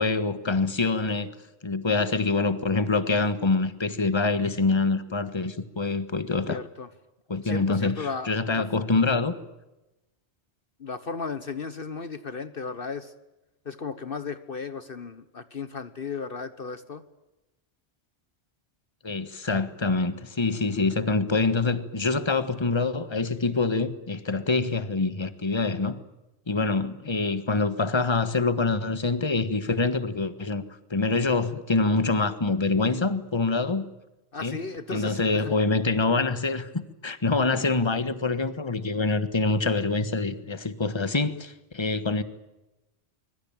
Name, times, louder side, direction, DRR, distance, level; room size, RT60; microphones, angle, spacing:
voice 1, 0.0-1.3 1.6-6.6 7.3-9.3 19.0-26.0 26.5-30.6 30.9-33.8 34.4-34.6 34.9-42.2, left 3 dB, 25° left, 12 dB, 1.5 m, -25 dB
voice 2, 6.5-6.9 7.4-8.7 10.8-13.1 13.6-17.0 34.3-35.6, left 5 dB, 55° left, 12 dB, 1.4 m, -35 dB
25.0 x 22.5 x 8.9 m, 0.98 s
omnidirectional pair, 1.1 m